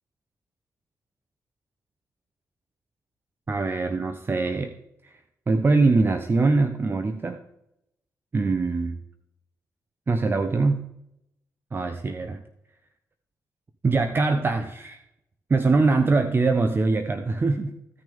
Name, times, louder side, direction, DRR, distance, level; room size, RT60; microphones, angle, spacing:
voice 1, 3.5-4.7 5.0-5.2 5.5-7.4 8.3-9.0 10.1-10.9 11.7-12.4 13.8-15.0 15.5-17.8, right 3 dB, 35° right, 8 dB, 0.8 m, -23 dB
15.5 x 6.2 x 3.5 m, 0.82 s
cardioid pair, 70°, 6 cm